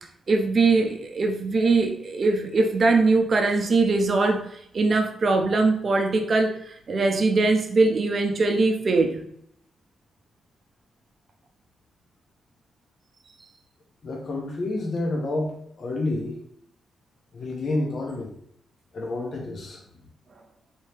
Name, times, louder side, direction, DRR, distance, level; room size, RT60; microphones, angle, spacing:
voice 1, 0.3-9.2, right 3 dB, 40° right, 4 dB, 0.6 m, -22 dB
voice 2, 14.0-16.4 17.3-18.3 18.9-19.8, left 2 dB, 50° left, 0 dB, 0.7 m, -29 dB
4.3 x 2.8 x 3.2 m, 0.68 s
cardioid pair, 130°, 0 cm